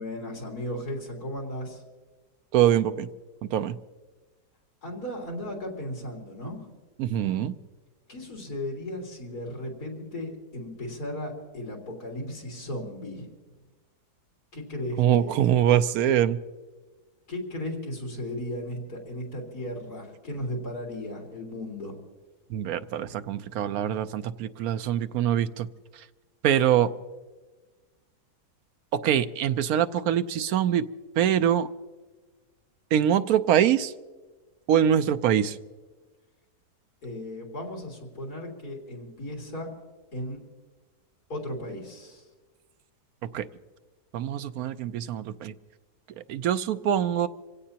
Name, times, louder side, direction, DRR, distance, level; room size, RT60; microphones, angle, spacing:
voice 1, 0.0-1.8 4.8-6.6 8.1-13.3 14.5-15.4 17.3-22.0 37.0-39.7 40.1-40.4 41.3-42.3, left 1 dB, 75° left, -1 dB, 3.9 m, -36 dB
voice 2, 2.5-3.1 3.4-3.8 7.0-7.5 15.0-16.4 22.5-25.7 26.4-26.9 28.9-30.9 31.2-31.7 32.9-33.9 34.7-35.6 43.2-43.5 44.1-45.5 46.3-47.3, right 10 dB, 75° right, 11 dB, 1.1 m, -24 dB
26.0 x 16.5 x 2.9 m, 1.3 s
omnidirectional pair, 1.7 m